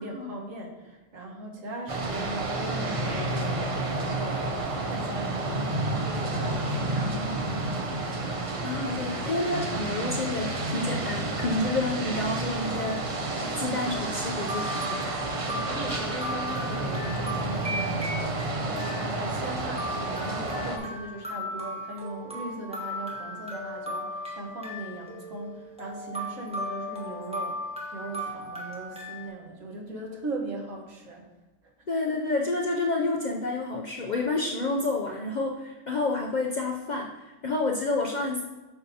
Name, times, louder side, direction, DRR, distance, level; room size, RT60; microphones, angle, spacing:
voice 1, 0.0-7.8 15.4-18.2 18.6-27.6 27.9-31.3 31.6-31.7, right 2 dB, 90° right, 1 dB, 1.6 m, -39 dB
sound 1, 1.9-20.8, right 2 dB, 40° right, 0.5 m, -30 dB
voice 2, 8.6-13.0 13.6-15.1 31.9-38.4, left 2 dB, 55° left, 0 dB, 0.5 m, -29 dB
sound 2, 12.6-13.1 14.0-14.1 14.5-29.3, equal, 5° right, 1.1 m, -37 dB
7.6 x 5.7 x 2.8 m, 1.1 s
omnidirectional pair, 1.3 m